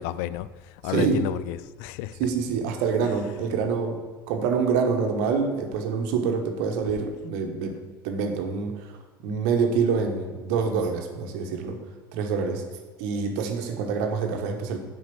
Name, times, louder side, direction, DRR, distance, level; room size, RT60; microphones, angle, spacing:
voice 1, 0.0-2.2, left 14 dB, 60° left, 16 dB, 0.4 m, -31 dB
voice 2, 0.8-1.2 2.2-4.0 4.3-7.8 8.0-11.8 12.1-12.6 13.0-14.8, right 5 dB, 60° right, 4 dB, 1.3 m, -26 dB
7.6 x 5.3 x 6.9 m, 1.3 s
figure-of-eight pair, 65°, 12 cm